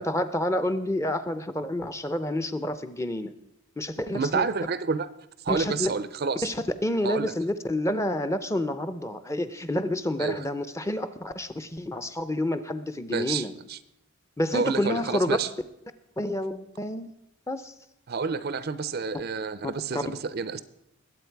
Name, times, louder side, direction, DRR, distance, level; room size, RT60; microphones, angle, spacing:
voice 1, 0.0-3.3 3.8-4.5 5.5-5.9 6.4-13.5 14.4-15.4 16.2-17.2 17.5-17.7 19.9-20.0, left 1 dB, 15° left, 10 dB, 0.6 m, -29 dB
voice 2, 4.1-5.1 5.4-6.5 7.0-7.3 10.2-10.5 13.1-13.8 14.5-15.5 18.1-20.6, right 5 dB, 45° right, 15 dB, 0.5 m, -29 dB
21.0 x 8.3 x 4.6 m, 0.83 s
head